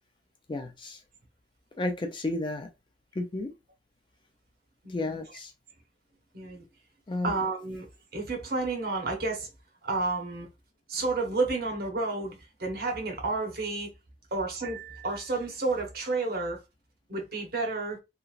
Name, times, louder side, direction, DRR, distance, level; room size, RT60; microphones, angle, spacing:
voice 1, 0.5-1.0 1.8-2.7 3.2-3.5 4.9-5.5 7.1-7.3, left 2 dB, 25° left, 0.4 m, -32 dB
voice 2, 4.8-5.2 6.3-6.6 7.2-7.9 8.1-9.5 9.8-10.5 10.9-13.9 14.3-16.6 17.1-18.0, right 3 dB, 55° right, 0.9 m, -31 dB
3.0 x 2.4 x 2.4 m
head